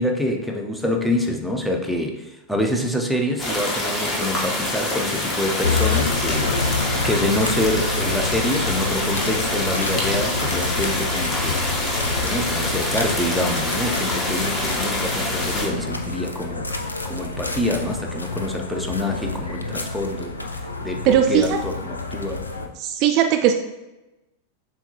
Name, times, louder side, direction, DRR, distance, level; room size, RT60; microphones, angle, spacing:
voice 1, 0.0-11.7 11.9-16.8 17.0-20.4 20.8-22.4, left 1 dB, ahead, 1 dB, 0.6 m, -26 dB
sound 1, 3.4-15.7, left 1 dB, 25° left, 1.0 m, -26 dB
sound 2, 5.6-22.7, left 3 dB, 80° left, 0.4 m, -28 dB
voice 2, 21.1-21.6 22.8-23.5, right 9 dB, 40° right, 5 dB, 0.3 m, -18 dB
7.0 x 2.3 x 2.8 m, 1.0 s
figure-of-eight pair, 90°, 0 cm